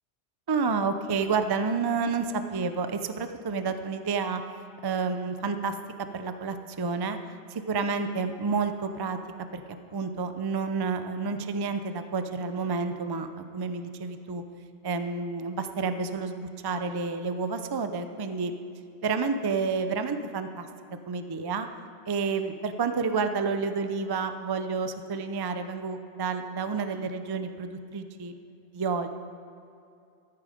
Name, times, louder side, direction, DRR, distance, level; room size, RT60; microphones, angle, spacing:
voice 1, 0.5-4.4 4.8-7.2 7.5-9.2 9.5-9.6 9.9-14.4 14.8-18.5 19.0-20.7 21.1-21.7 22.1-28.3 28.7-29.1, right 4 dB, 35° right, 9 dB, 0.4 m, -30 dB
13.5 x 8.6 x 5.0 m, 2.6 s
omnidirectional pair, 1.2 m